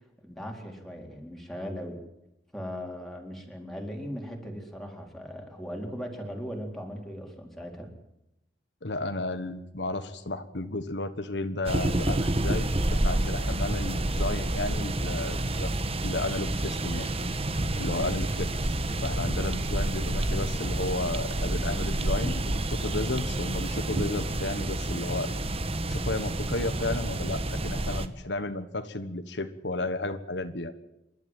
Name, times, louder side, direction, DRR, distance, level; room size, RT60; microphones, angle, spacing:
voice 1, 0.2-2.0 2.5-7.9 18.0-18.1 19.3-19.4, equal, ahead, 1 dB, 4.1 m, -38 dB
voice 2, 8.8-15.7 16.0-17.1 17.7-18.5 19.0-25.3 25.9-30.7, left 2 dB, 75° left, 9 dB, 1.4 m, -33 dB
sound 1, 11.7-28.1, right 1 dB, 35° right, 1.3 m, -29 dB
28.0 x 12.5 x 9.1 m, 0.88 s
head